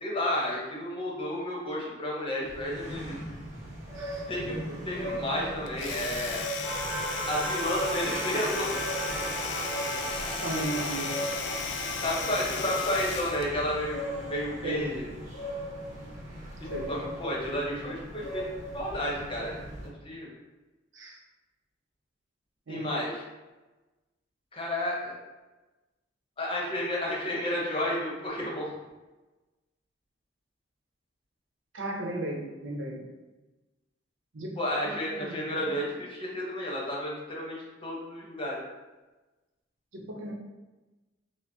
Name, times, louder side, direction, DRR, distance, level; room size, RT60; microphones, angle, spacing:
voice 1, 0.0-3.2 4.3-4.6 4.8-6.5 7.3-8.7 12.0-15.1 16.6-18.4 18.7-20.3 22.7-23.2 24.5-25.1 26.4-28.7 34.5-38.6, left 1 dB, 30° left, -4 dB, 0.9 m, -32 dB
sound 1, 2.4-19.9, equal, 40° right, 1.0 m, -39 dB
voice 2, 3.9-4.8 10.4-11.2 14.6-14.9 16.7-16.9 20.9-21.2 22.7-23.0 31.7-33.0 34.3-34.5 34.8-35.8 39.9-40.3, right 1 dB, 80° right, 0 dB, 0.7 m, -36 dB
Domestic sounds home sounds, 5.7-13.5, left 6 dB, 65° left, 0.4 m, -36 dB
sound 2, 6.6-15.2, right 2 dB, 5° right, 0.9 m, -37 dB
5.5 x 2.0 x 2.7 m, 1.1 s
head